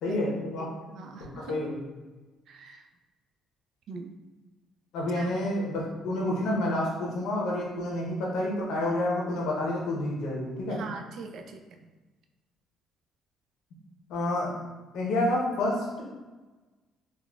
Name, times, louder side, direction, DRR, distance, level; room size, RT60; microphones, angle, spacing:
voice 1, 0.0-0.7 1.2-1.8 4.9-10.8 14.1-14.5 14.9-16.0, left 1 dB, 80° left, -2 dB, 0.8 m, -29 dB
voice 2, 0.6-1.6 2.5-2.8 3.9-4.1 5.2-5.3 10.8-11.6, right 4 dB, 60° right, 4 dB, 0.3 m, -42 dB
3.6 x 2.3 x 2.3 m, 1.2 s
cardioid pair, 130°, 0 cm